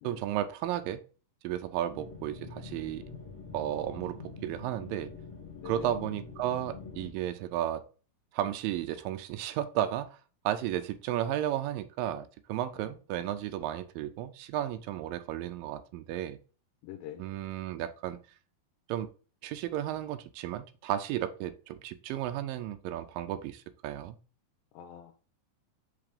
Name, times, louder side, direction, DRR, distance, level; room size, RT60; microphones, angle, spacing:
voice 1, 0.0-1.0 1.4-3.0 3.5-5.1 5.6-7.8 8.3-10.2 10.5-16.4 17.2-18.2 18.9-19.1 19.4-24.2, right 12 dB, 85° right, 10 dB, 2.2 m, -33 dB
sound 1, 1.9-7.1, left 4 dB, 35° left, 0.4 m, -45 dB
voice 2, 5.6-6.0 12.7-12.9 16.8-17.3 24.7-25.1, left 11 dB, 85° left, 5 dB, 2.4 m, -45 dB
5.9 x 3.2 x 5.0 m, 0.36 s
omnidirectional pair, 4.1 m